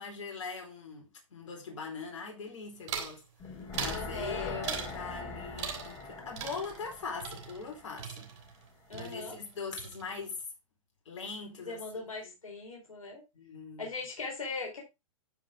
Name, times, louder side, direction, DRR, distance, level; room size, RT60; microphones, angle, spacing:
voice 1, 0.0-3.2 3.5-8.3 8.9-10.4 11.1-12.3 13.3-13.9, left 5 dB, 70° left, 4.4 m, -41 dB
sound 1, 2.9-3.2 3.7-4.1 4.6-5.0 5.6-6.1 6.4-8.7 8.9-9.5 9.8-10.3, right 7 dB, 60° right, 4.2 m, -40 dB
sound 2, 3.4-8.5 8.8-8.9, left 3 dB, 30° left, 3.3 m, -42 dB
voice 2, 3.8-4.9 8.9-9.4 11.6-13.2 13.8-14.8, left 3 dB, 85° left, 4.1 m, -40 dB
12.5 x 5.2 x 3.6 m
hypercardioid pair, 120°, 17 cm